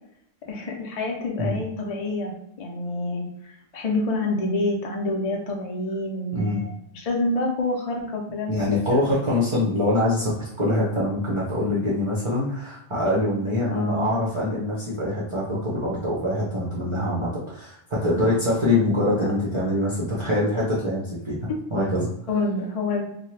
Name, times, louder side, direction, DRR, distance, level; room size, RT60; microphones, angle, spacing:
voice 1, 0.5-3.3 3.7-9.0 13.7-14.1 19.2-19.3 21.5-21.6 22.3-23.0, left 2 dB, 50° left, 0 dB, 0.4 m, -27 dB
voice 2, 6.3-6.6 8.5-21.4 21.7-22.1, left 1 dB, 35° right, -7 dB, 0.5 m, -24 dB
2.8 x 2.2 x 3.1 m, 0.75 s
omnidirectional pair, 1.3 m